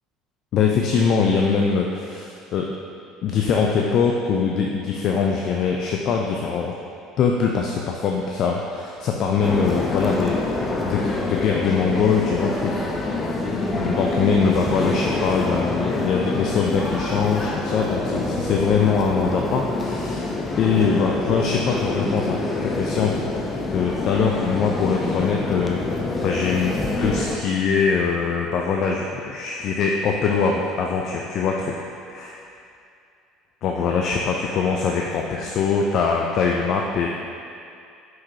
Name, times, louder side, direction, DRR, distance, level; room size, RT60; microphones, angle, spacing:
voice 1, 0.5-2.7 3.2-6.7 7.2-10.6 10.8-12.9 13.8-20.3 20.6-23.2 23.7-25.8 26.2-32.5 33.6-37.1, left 5 dB, 50° left, 0 dB, 0.5 m, -22 dB
sound 1, 9.4-27.4, left 2 dB, 25° left, 0.8 m, -26 dB
7.7 x 5.8 x 2.8 m, 2.5 s
hypercardioid pair, 65°, 0 cm